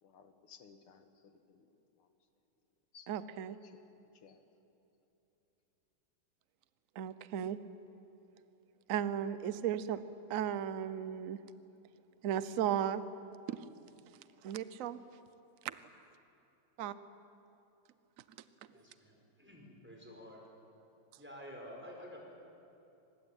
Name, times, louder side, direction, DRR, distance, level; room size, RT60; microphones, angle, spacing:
voice 1, 0.0-1.7 2.0-2.1 2.9-3.1 3.6-3.8 4.1-4.4, left 6 dB, 85° left, 7 dB, 2.4 m, -59 dB
voice 2, 3.1-3.6 7.0-7.6 8.9-10.0 10.3-11.4 12.2-13.0 13.5-13.6 14.4-15.0 15.6-15.7 16.8-16.9, right 9 dB, 55° right, 13 dB, 0.9 m, -35 dB
voice 3, 18.7-20.4 21.2-22.2, equal, 5° right, -1 dB, 5.1 m, -50 dB
24.5 x 21.0 x 8.9 m, 2.9 s
omnidirectional pair, 2.4 m